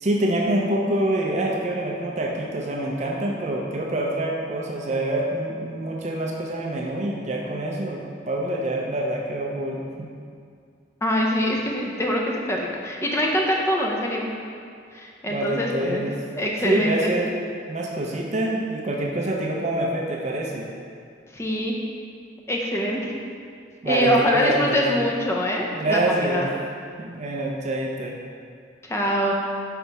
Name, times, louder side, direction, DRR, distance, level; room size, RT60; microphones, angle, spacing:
voice 1, 0.0-10.1 15.3-16.2 16.6-17.4 17.7-20.7 23.8-25.1 25.7-26.5 27.0-28.2, right 1 dB, 35° right, -1 dB, 0.5 m, -26 dB
voice 2, 11.0-14.3 14.9-16.0 16.3-17.1 21.3-21.7 22.5-23.1 23.9-26.5 28.8-29.3, equal, 15° left, -2 dB, 0.6 m, -24 dB
5.8 x 5.3 x 3.5 m, 2.3 s
head